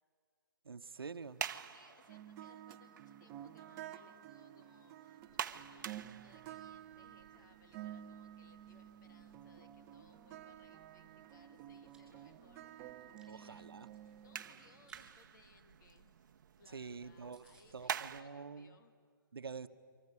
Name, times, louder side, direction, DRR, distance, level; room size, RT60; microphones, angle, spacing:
voice 1, 0.6-1.4 13.3-13.9 16.7-17.4 17.7-18.8 19.3-19.7, right 5 dB, 75° right, 10 dB, 1.1 m, -47 dB
sound 1, 1.1-18.2, right 8 dB, 55° right, 0.9 m, -49 dB
voice 2, 1.5-13.7 14.0-18.9, left 4 dB, 55° left, 7 dB, 1.8 m, -67 dB
sound 2, 2.1-15.1, right 12 dB, 25° right, 0.8 m, -52 dB
Chewing mastication, 11.9-12.0 12.5-14.0 14.6-15.1 15.4-15.6 15.9-16.0 16.3-16.4 16.8-16.9 17.0-17.1 17.3-17.7, right 3 dB, 5° right, 7.7 m, -67 dB
29.0 x 24.0 x 8.4 m, 2.1 s
figure-of-eight pair, 135°, 12 cm